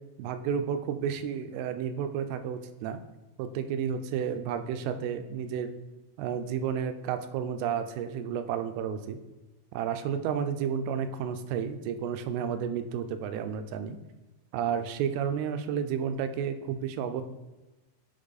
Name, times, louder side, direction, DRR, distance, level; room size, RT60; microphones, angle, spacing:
voice 1, 0.2-3.0 3.4-5.7 6.2-9.2 9.7-14.0 14.5-17.2, right 8 dB, 85° right, 9 dB, 2.6 m, -31 dB
9.0 x 3.3 x 4.0 m, 1.1 s
omnidirectional pair, 4.5 m